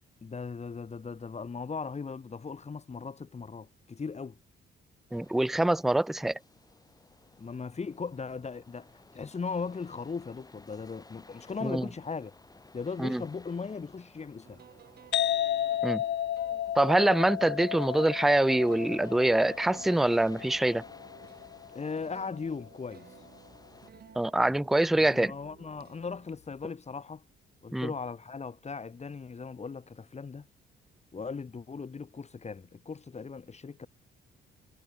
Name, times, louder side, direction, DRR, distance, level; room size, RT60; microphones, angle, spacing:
voice 1, 0.2-4.4 7.4-12.3 12.7-14.6 21.7-23.1 25.0-27.2 27.6-30.5 31.1-33.9, left 5 dB, 35° left, 3.6 m, -38 dB
sound 1, 5.1-23.9, left 3 dB, 20° left, 3.7 m, -56 dB
voice 2, 5.1-6.4 11.6-11.9 13.0-13.2 15.8-16.0 16.8-20.8 24.2-25.3 27.7-27.9, right 1 dB, ahead, 0.4 m, -25 dB
sound 2, 14.4-26.3, right 8 dB, 55° right, 3.0 m, -55 dB
sound 3, 15.1-22.6, left 11 dB, 65° left, 1.4 m, -33 dB
cardioid pair, 90°, 20 cm